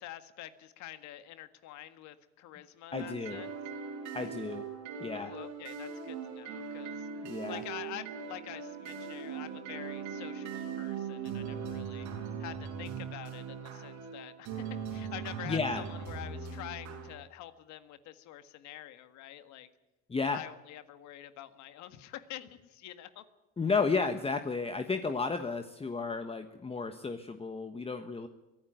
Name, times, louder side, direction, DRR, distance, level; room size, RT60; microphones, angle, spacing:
voice 1, 0.0-3.5 5.1-7.1 7.5-12.1 12.4-19.7 20.3-23.2 23.6-23.7, left 13 dB, 75° left, 11 dB, 1.7 m, -47 dB
voice 2, 2.9-3.4 4.1-4.6 5.0-5.3 7.2-7.6 15.4-15.8 20.1-20.4 23.6-28.3, left 4 dB, 20° left, 7 dB, 1.3 m, -32 dB
sound 1, 2.9-17.1, right 6 dB, 75° right, 5.4 m, -40 dB
23.5 x 13.0 x 9.3 m, 1.1 s
cardioid pair, 110°, 29 cm